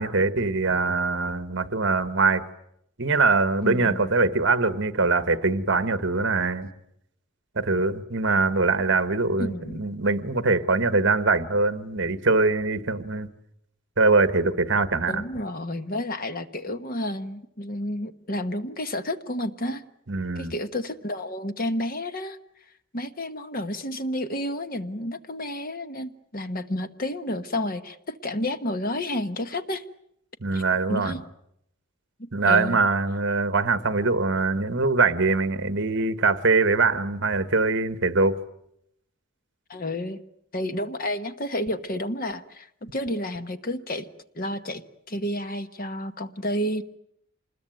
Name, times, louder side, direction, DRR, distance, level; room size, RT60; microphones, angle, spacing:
voice 1, 0.0-2.4 3.0-6.7 7.5-13.3 14.0-15.2 20.1-20.5 30.4-31.1 32.3-38.4, right 3 dB, 55° right, 12 dB, 1.4 m, -23 dB
voice 2, 3.6-4.1 9.4-9.8 15.1-19.8 20.3-22.4 22.9-29.8 30.5-30.6 30.9-31.2 32.4-32.8 39.7-40.2 40.5-44.1 44.3-46.8, left 1 dB, 40° left, 10 dB, 1.2 m, -30 dB
27.0 x 21.0 x 9.1 m, 0.75 s
head